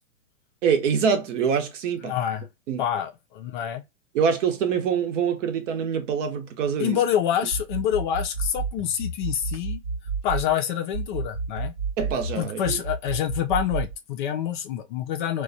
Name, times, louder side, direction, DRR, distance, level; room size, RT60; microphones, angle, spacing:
voice 1, 0.6-2.2 2.7-2.8 4.1-7.0 12.0-12.8, right 7 dB, 60° right, 0.8 m, -25 dB
voice 2, 2.1-2.5 2.8-3.8 6.8-9.8 10.2-11.7 12.4-15.4, left 10 dB, 35° left, 0.4 m, -27 dB
sound 1, 7.5-10.5 10.9-13.9, right 4 dB, 85° right, 1.0 m, -31 dB
3.1 x 2.2 x 2.5 m
hypercardioid pair, 120°, 43 cm